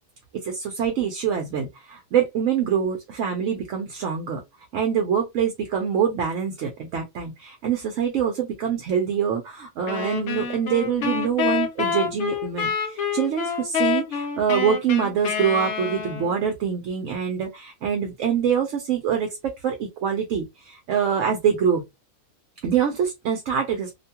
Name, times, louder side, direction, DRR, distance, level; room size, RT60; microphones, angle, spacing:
voice 1, 0.3-4.4 4.7-21.8 22.6-23.9, right 7 dB, 70° right, 0.9 m, -25 dB
sound 1, 9.9-16.4, left 6 dB, 65° left, 0.9 m, -27 dB
2.7 x 2.2 x 2.8 m
omnidirectional pair, 1.4 m